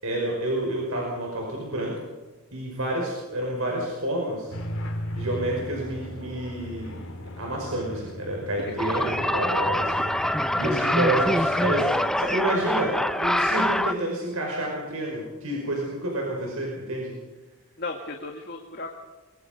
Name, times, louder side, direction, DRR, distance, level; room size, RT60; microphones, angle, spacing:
voice 1, 0.0-1.9 2.5-4.5 5.2-7.0 7.4-17.1, right 1 dB, 75° right, -1 dB, 5.5 m, -29 dB
Hurricane and Spitfire dog fighting, 4.5-12.0, equal, 75° left, 4.5 m, -37 dB
voice 2, 8.7-9.1 17.8-19.0, left 3 dB, 45° left, 2 dB, 1.8 m, -36 dB
sound 1, 8.8-13.9, left 1 dB, ahead, 0.6 m, -24 dB
23.0 x 23.0 x 5.3 m, 1.2 s
head